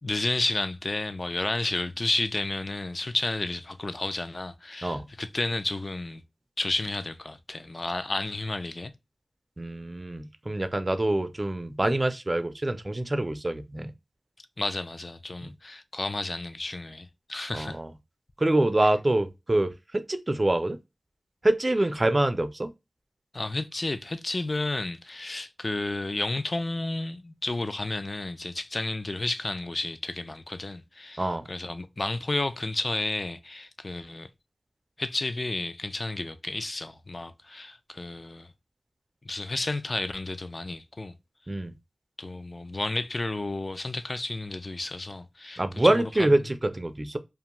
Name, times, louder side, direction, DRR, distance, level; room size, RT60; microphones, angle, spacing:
voice 1, 0.0-6.2 6.6-8.9 14.6-17.8 23.3-34.3 35.0-38.5 39.2-41.2 42.2-46.3, left 2 dB, 50° left, 0.3 m, -32 dB
voice 2, 9.6-13.9 15.4-15.5 17.5-17.9 18.4-20.8 21.4-22.7 31.2-31.4 41.5-41.7 45.6-47.2, right 1 dB, 40° right, 0.3 m, -25 dB
2.4 x 2.2 x 2.8 m
wide cardioid pair, 50°, 0 cm